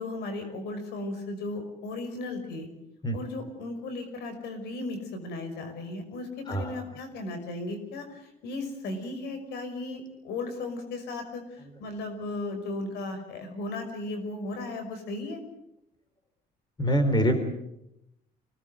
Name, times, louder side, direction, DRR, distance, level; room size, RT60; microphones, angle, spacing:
voice 1, 0.0-2.7 3.1-15.4, left 2 dB, 80° left, 8 dB, 5.7 m, -36 dB
voice 2, 6.5-6.8 16.8-17.4, equal, 25° left, 9 dB, 4.2 m, -24 dB
25.5 x 19.0 x 7.8 m, 0.82 s
cardioid pair, 110°, 17 cm